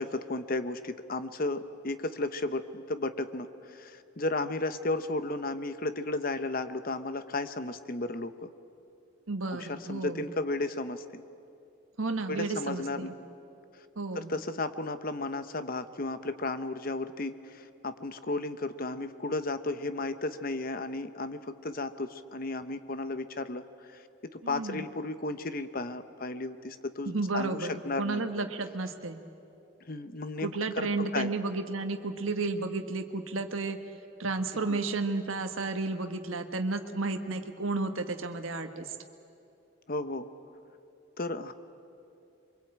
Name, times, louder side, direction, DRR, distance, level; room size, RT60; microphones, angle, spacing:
voice 1, 0.0-8.5 9.5-11.2 12.3-13.1 14.1-27.6 27.8-28.2 29.9-30.9 31.1-31.3 34.7-34.8 39.9-40.3 41.2-41.5, left 2 dB, 45° left, 11 dB, 0.9 m, -34 dB
voice 2, 9.3-10.2 12.0-13.1 13.9-14.3 24.4-24.8 27.0-29.2 30.4-33.8 34.2-38.9, right 3 dB, 80° right, 6 dB, 1.4 m, -32 dB
24.0 x 23.5 x 8.7 m, 2.7 s
head